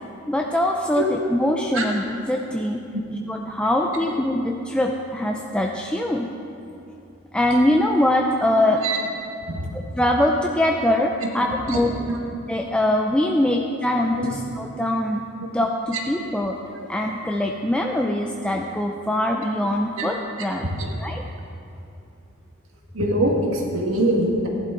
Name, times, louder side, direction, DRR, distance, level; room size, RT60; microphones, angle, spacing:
voice 1, 0.3-2.8 3.3-6.3 7.3-8.8 10.0-11.9 12.5-16.6 16.9-20.7 21.0-21.2, left 1 dB, 5° left, 1 dB, 0.5 m, -23 dB
voice 2, 22.9-24.5, right 1 dB, 75° right, 0 dB, 2.0 m, -23 dB
15.5 x 11.5 x 3.9 m, 2.8 s
head